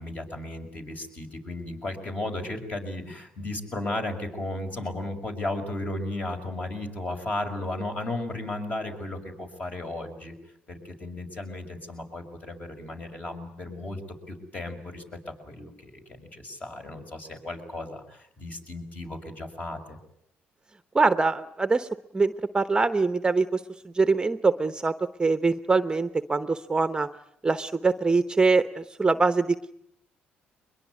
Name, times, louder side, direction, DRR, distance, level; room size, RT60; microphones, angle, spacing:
voice 1, 0.0-10.3 10.7-14.0 14.3-20.0, left 2 dB, 35° left, 4 dB, 6.1 m, -35 dB
voice 2, 20.9-21.9 22.1-24.9 25.2-27.1 27.4-29.7, right 4 dB, 20° right, 11 dB, 1.0 m, -23 dB
23.0 x 21.5 x 9.5 m, 0.74 s
cardioid pair, 85°, 4 cm